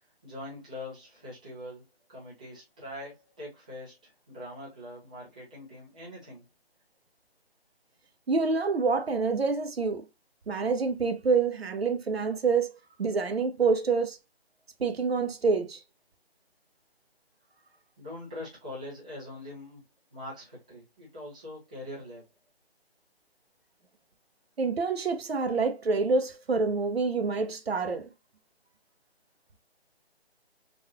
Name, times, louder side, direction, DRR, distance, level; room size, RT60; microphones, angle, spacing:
voice 1, 0.2-1.8 2.1-6.4 18.0-19.8 20.1-22.2, left 1 dB, 10° right, 0.5 m, -43 dB
voice 2, 8.3-10.0 10.5-12.7 13.0-14.2 14.8-15.8 24.6-28.0, right 4 dB, 70° right, 0.8 m, -27 dB
4.0 x 2.5 x 2.8 m
figure-of-eight pair, 155°, 31 cm